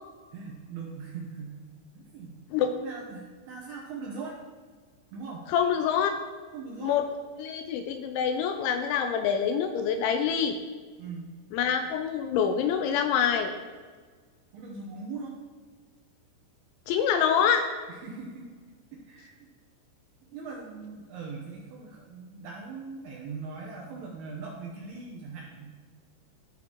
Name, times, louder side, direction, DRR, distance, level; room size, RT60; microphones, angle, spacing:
voice 1, 0.3-1.6 1.9-2.4 2.8-4.4 5.1-5.5 6.5-7.0 11.0-11.3 14.5-15.4 17.9-18.5 18.9-19.3 20.2-25.8, right 4 dB, 70° right, -3 dB, 2.5 m, -40 dB
voice 2, 5.5-6.2 6.8-7.0 7.4-10.6 11.5-13.5 16.9-17.7, left 7 dB, 85° left, 6 dB, 2.8 m, -26 dB
13.5 x 5.7 x 3.0 m, 1.5 s
omnidirectional pair, 5.6 m